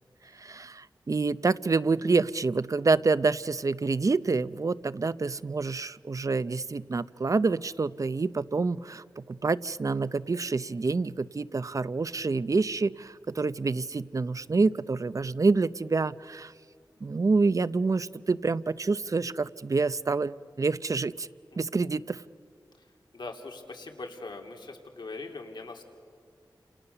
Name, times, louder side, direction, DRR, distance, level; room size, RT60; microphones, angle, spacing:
voice 1, 0.4-16.5 17.0-21.3 21.6-22.2, right 4 dB, 45° right, 16 dB, 0.6 m, -27 dB
voice 2, 23.1-25.8, left 3 dB, 70° left, 2 dB, 3.1 m, -41 dB
29.5 x 28.0 x 6.9 m, 2.3 s
wide cardioid pair, 100°, 8 cm